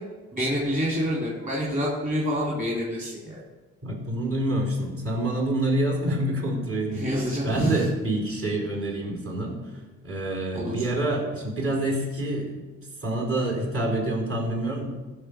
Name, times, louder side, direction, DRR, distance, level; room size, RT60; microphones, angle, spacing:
voice 1, 0.3-3.4 6.9-7.9 10.5-10.8, equal, 25° right, -6 dB, 3.6 m, -27 dB
voice 2, 3.8-7.1 7.4-9.6 10.0-12.5 13.0-14.8, right 1 dB, 45° right, 0 dB, 4.1 m, -27 dB
15.0 x 5.8 x 5.2 m, 1.3 s
cardioid pair, 90°, 30 cm